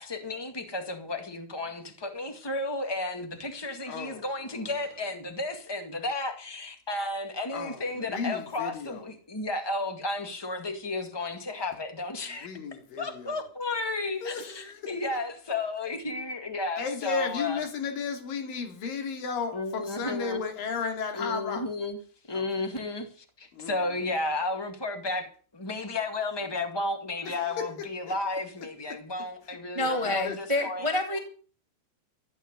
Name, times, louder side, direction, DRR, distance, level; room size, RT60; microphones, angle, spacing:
voice 1, 0.0-12.5 13.0-17.6 19.5-20.4 21.1-22.0 22.3-23.1 23.4-25.3 25.5-30.9, left 2 dB, 20° left, 0.6 m, -33 dB
voice 2, 3.9-4.8 7.5-9.1 12.3-13.5 14.2-14.9 16.8-21.6 22.3-22.5 23.5-24.1 27.2-27.7 29.8-30.4, left 5 dB, 60° left, 4.3 m, -34 dB
voice 3, 29.7-31.2, left 1 dB, 55° right, 0.3 m, -28 dB
14.0 x 9.0 x 8.2 m
omnidirectional pair, 4.7 m